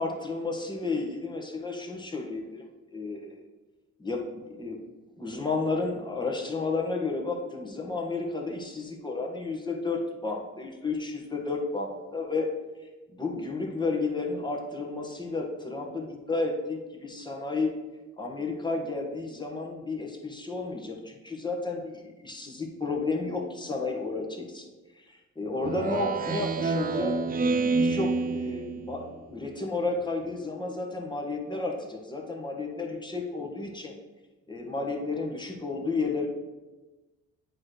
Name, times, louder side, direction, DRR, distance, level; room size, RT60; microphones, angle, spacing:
voice 1, 0.0-2.6 2.9-3.4 4.0-4.8 5.2-12.5 12.8-17.7 18.2-24.7 24.9-27.2 27.7-33.9 34.5-36.3, left 3 dB, 15° left, 1 dB, 1.5 m, -32 dB
Speech synthesizer, 25.6-29.2, right 4 dB, 30° right, 0.5 m, -28 dB
8.5 x 3.3 x 6.4 m, 1.2 s
cardioid pair, 90°, 30 cm